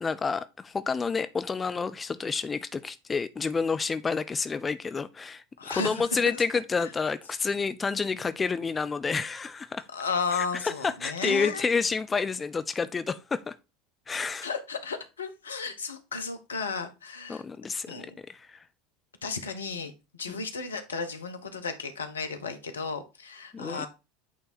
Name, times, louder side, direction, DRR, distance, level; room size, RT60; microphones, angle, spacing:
voice 1, 0.0-9.9 10.3-13.5 14.1-14.5 17.3-18.6 20.3-20.4 23.5-23.9, left 5 dB, 20° left, 0.4 m, -29 dB
voice 2, 5.6-6.0 6.3-6.4 6.8-6.9 9.9-11.6 14.4-17.4 17.9-18.2 19.2-19.9 20.2-23.9, left 5 dB, 80° left, 0.9 m, -34 dB
8.7 x 3.5 x 4.1 m
figure-of-eight pair, 75°, 0 cm